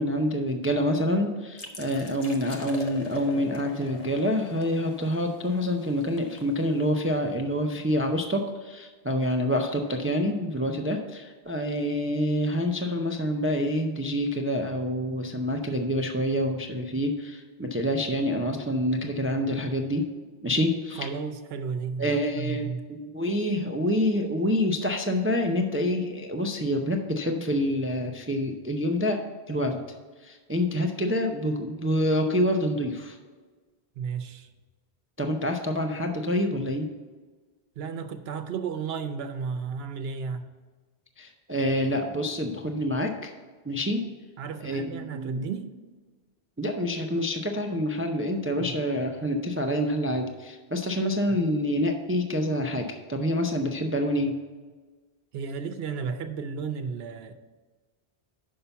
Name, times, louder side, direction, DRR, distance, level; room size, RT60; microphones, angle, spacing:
voice 1, 0.0-20.0 20.4-21.1 22.0-29.8 30.2-33.2 35.2-36.9 41.2-43.3 43.7-44.0 44.6-45.4 46.6-54.3, equal, 20° right, 4 dB, 0.3 m, -27 dB
sound 1, 1.6-7.1, left 2 dB, 40° left, 0.8 m, -43 dB
voice 2, 21.0-22.8 34.0-34.5 37.8-40.5 44.4-45.7 48.6-48.8 55.3-57.3, right 5 dB, 70° right, 7 dB, 0.9 m, -33 dB
5.6 x 5.6 x 6.8 m, 1.4 s
omnidirectional pair, 1.1 m